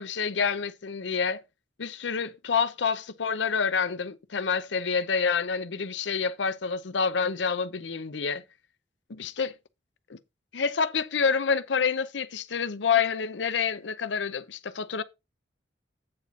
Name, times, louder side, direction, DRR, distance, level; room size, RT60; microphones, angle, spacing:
voice 1, 0.0-1.4 1.8-8.4 9.2-9.5 10.1-10.2 10.5-15.0, left 5 dB, 80° left, 0.7 m, -28 dB
8.7 x 4.0 x 5.8 m
head